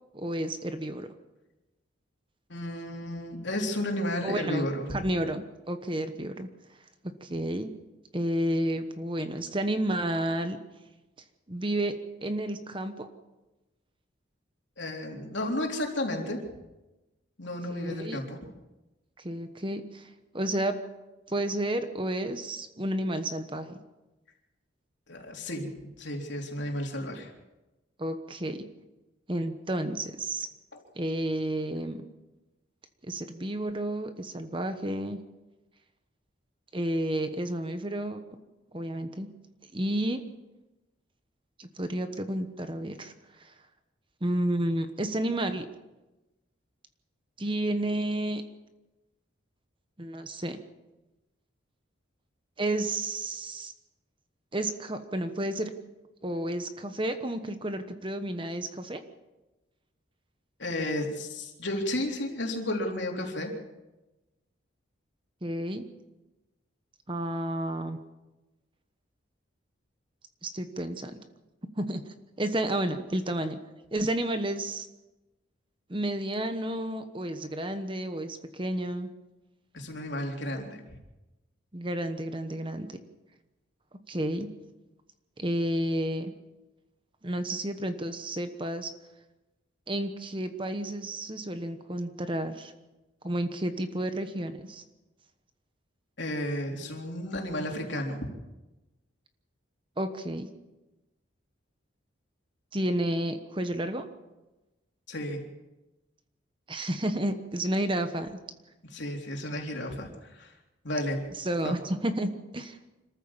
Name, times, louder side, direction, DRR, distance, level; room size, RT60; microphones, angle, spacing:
voice 1, 0.1-1.1 4.2-6.5 7.0-7.7 8.1-10.6 11.5-11.9 12.2-13.1 17.7-18.2 19.2-20.1 20.3-20.8 21.3-23.8 28.0-28.6 29.3-30.5 31.0-32.0 33.1-35.2 36.7-38.2 38.7-39.3 39.7-40.2 41.6-43.1 43.4-43.5 44.2-45.7 47.4-48.4 50.0-50.6 52.6-53.7 54.5-55.7 56.2-59.0 65.4-65.8 67.1-68.0 70.4-71.1 71.8-72.0 72.4-73.6 73.9-74.9 75.9-79.1 81.7-82.9 84.1-84.5 85.4-86.3 87.2-88.9 89.9-92.7 93.2-94.8 100.0-100.5 102.7-104.1 106.7-108.4 111.4-112.8, right 1 dB, 25° right, 8 dB, 1.1 m, -31 dB
voice 2, 2.5-4.8 14.8-16.4 17.4-18.4 25.1-25.7 26.0-27.3 60.6-63.5 79.7-80.8 96.2-98.2 105.1-105.4 108.9-110.5 110.8-111.2 111.6-111.7, left 1 dB, 60° left, 1 dB, 3.7 m, -32 dB
26.0 x 14.0 x 7.3 m, 1.0 s
head